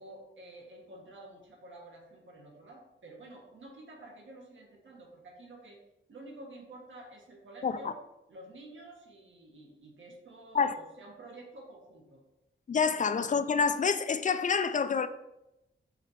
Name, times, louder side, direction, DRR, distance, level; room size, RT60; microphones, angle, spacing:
voice 1, 0.0-5.8 6.1-7.9 8.3-12.2, right 1 dB, 80° right, 1.6 m, -50 dB
voice 2, 7.6-7.9 10.5-10.8 12.7-15.1, left 5 dB, 40° left, 0.4 m, -27 dB
5.7 x 4.2 x 5.0 m
wide cardioid pair, 145°, 20 cm